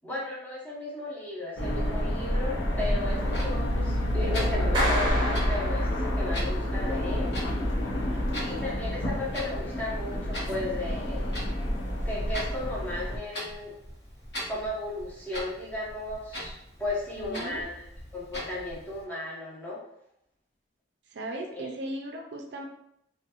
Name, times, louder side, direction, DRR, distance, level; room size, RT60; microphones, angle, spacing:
voice 1, 0.0-7.3 8.4-11.4 12.0-13.7 14.5-16.5 16.8-17.9 18.1-19.8 21.5-21.7, left 2 dB, 10° left, -6 dB, 0.6 m, -35 dB
sound 1, 1.6-13.2, equal, 90° left, 0.6 m, -29 dB
Clock, 3.0-19.0, equal, 60° left, 0.9 m, -42 dB
Clapping, 4.7-6.5, equal, 25° right, 0.8 m, -30 dB
voice 2, 17.2-17.6 21.1-22.7, right 1 dB, 65° right, 3 dB, 0.4 m, -36 dB
2.5 x 2.2 x 2.8 m, 0.77 s
head